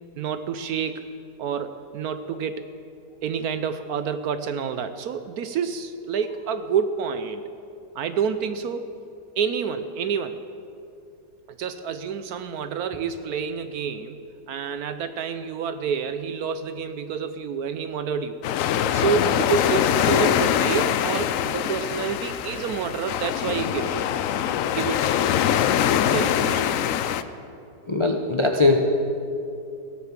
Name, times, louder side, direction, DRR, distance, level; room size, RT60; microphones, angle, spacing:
voice 1, 0.2-1.0 1.4-2.7 3.2-7.4 7.9-8.9 9.4-10.4 11.5-14.2 14.5-18.4 18.9-24.0 24.3-24.4 24.7-25.1 26.1-26.7, right 7 dB, 70° right, 10 dB, 1.0 m, -28 dB
sound 1, 18.4-27.2, left 10 dB, 80° left, 0.7 m, -23 dB
voice 2, 27.9-28.8, left 3 dB, 40° left, 3 dB, 0.4 m, -20 dB
16.5 x 9.4 x 7.3 m, 2.6 s
omnidirectional pair, 1.9 m